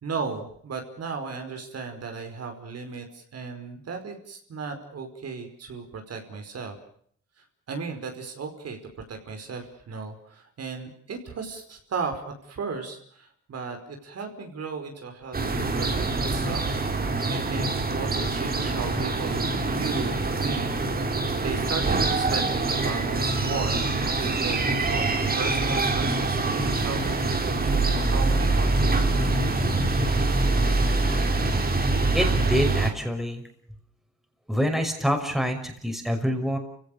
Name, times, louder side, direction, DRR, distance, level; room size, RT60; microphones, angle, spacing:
voice 1, 0.0-6.7 7.7-8.8 9.1-16.6 17.3-23.9 24.2-25.1 25.4-29.2, right 5 dB, 55° right, 5 dB, 5.1 m, -35 dB
sound 1, 15.3-32.9, right 2 dB, 30° right, 3.9 m, -24 dB
voice 2, 30.9-31.3 32.1-33.4 34.5-36.6, equal, ahead, 4 dB, 6.0 m, -26 dB
29.5 x 17.0 x 6.8 m, 0.63 s
cardioid pair, 90°, 30 cm